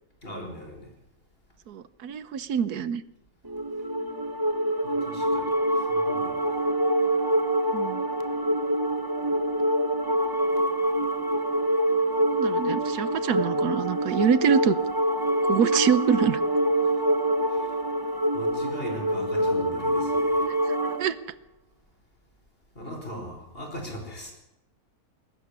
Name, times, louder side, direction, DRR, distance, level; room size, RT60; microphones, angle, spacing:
voice 1, 0.2-0.9 4.8-6.8 17.5-17.7 18.3-20.5 22.8-24.3, equal, 35° left, 2 dB, 5.0 m, -39 dB
voice 2, 1.7-3.0 7.7-8.0 12.3-14.7 15.5-16.4 21.0-21.2, right 8 dB, 85° right, 15 dB, 1.4 m, -25 dB
sound 1, 3.5-21.0, right 1 dB, 15° right, 1.0 m, -25 dB
21.5 x 13.0 x 9.7 m, 0.90 s
omnidirectional pair, 1.6 m